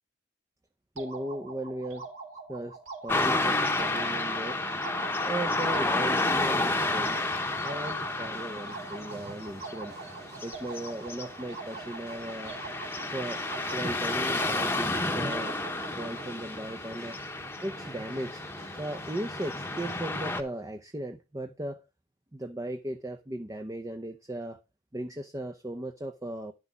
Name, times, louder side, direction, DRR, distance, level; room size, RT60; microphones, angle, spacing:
voice 1, 1.0-2.1 2.5-4.6 5.2-7.2 7.6-9.9 10.4-12.6 13.1-13.4 13.7-15.5 16.0-17.2 17.6-18.4 18.7-21.8 22.3-24.6 24.9-26.5, right 1 dB, 15° right, 0.7 m, -37 dB
sound 1, 1.0-16.3, right 4 dB, 90° right, 4.4 m, -44 dB
Car passing by / Traffic noise roadway noise, 3.1-20.4, left 2 dB, 10° left, 1.0 m, -31 dB
sound 2, 5.5-20.0, right 3 dB, 50° right, 2.8 m, -53 dB
11.0 x 6.3 x 5.1 m
head